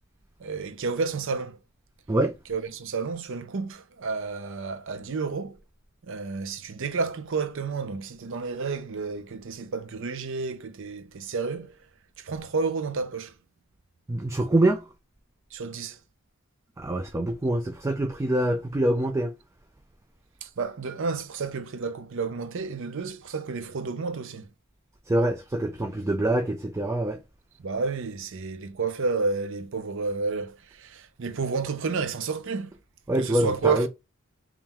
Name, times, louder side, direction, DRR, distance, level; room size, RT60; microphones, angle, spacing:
voice 1, 0.4-1.6 2.5-5.6 6.1-11.8 12.2-13.3 15.5-16.0 20.4-24.5 27.6-32.7 33.1-33.9, right 4 dB, 60° right, 0.6 m, -31 dB
voice 2, 14.1-14.8 16.8-19.3 25.1-27.2 33.1-33.9, right 1 dB, 15° right, 0.3 m, -25 dB
3.6 x 2.4 x 4.2 m
head